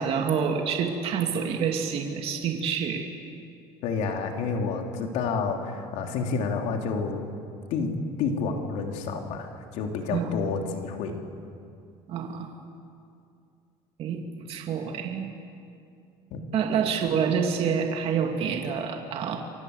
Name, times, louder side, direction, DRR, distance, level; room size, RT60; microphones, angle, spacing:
voice 1, 0.0-3.1 10.1-10.3 12.1-12.5 14.0-14.2 14.5-15.3 16.5-19.4, right 7 dB, 55° right, 3 dB, 2.4 m, -27 dB
voice 2, 3.8-7.2 7.7-11.2 16.3-16.4, left 5 dB, 75° left, 3 dB, 3.4 m, -29 dB
29.0 x 24.0 x 8.2 m, 2.5 s
cardioid pair, 130°, 12 cm